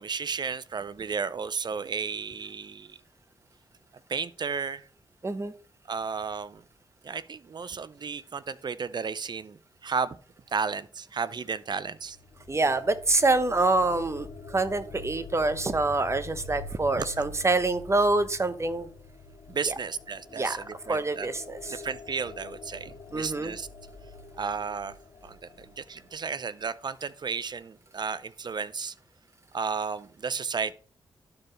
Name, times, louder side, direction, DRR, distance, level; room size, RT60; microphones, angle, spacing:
voice 1, 0.0-3.0 4.1-4.8 5.9-6.6 7.0-9.6 9.8-10.2 10.5-12.2 17.0-17.1 19.5-21.3 21.8-23.7 24.4-24.9 25.2-28.9 29.5-30.7, right 5 dB, 50° right, 0.6 m, -33 dB
sound 1, 11.8-26.6, left 3 dB, 60° left, 1.0 m, -46 dB
voice 2, 12.5-18.9 19.7-19.8 20.3-20.6 20.9-21.8 23.1-23.5, right 2 dB, 30° right, 1.0 m, -26 dB
12.0 x 4.6 x 3.2 m
cardioid pair, 55°, 10 cm